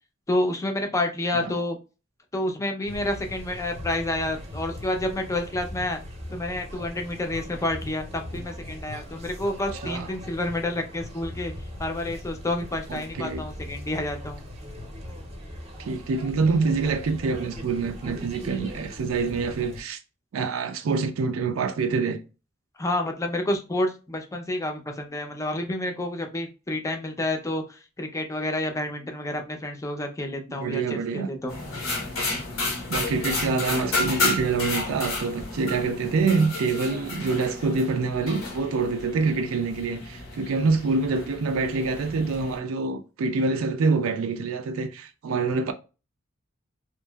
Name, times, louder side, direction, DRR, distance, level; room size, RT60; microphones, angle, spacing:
voice 1, 0.3-1.8 2.3-6.0 6.3-11.5 11.8-14.4 22.8-27.6 28.0-31.6, left 1 dB, 15° left, 0.4 m, -29 dB
sound 1, 2.8-19.8, left 1 dB, 30° right, 0.7 m, -40 dB
voice 2, 12.9-13.4 15.8-20.0 20.3-22.2 30.5-31.3 32.9-45.7, right 4 dB, 90° right, 0.4 m, -26 dB
sound 2, 31.5-42.6, left 3 dB, 90° left, 0.9 m, -32 dB
2.8 x 2.5 x 2.2 m
head